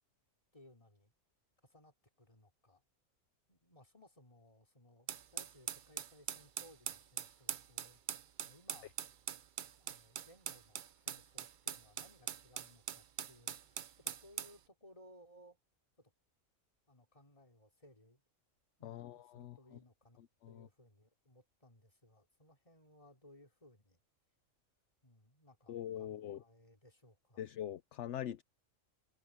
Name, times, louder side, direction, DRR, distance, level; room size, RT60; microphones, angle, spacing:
voice 1, 0.5-1.1 1.6-2.8 3.5-8.0 8.4-9.0 9.8-15.6 16.0-16.1 16.9-18.2 18.8-20.2 20.5-24.0 25.0-27.5, left 1 dB, 25° left, 3.3 m, -63 dB
sound 1, 5.1-14.6, right 8 dB, 50° right, 0.6 m, -43 dB
voice 2, 18.8-19.6 20.4-20.7 25.7-26.4 27.4-28.4, left 11 dB, 65° left, 0.9 m, -43 dB
omnidirectional pair, 1.4 m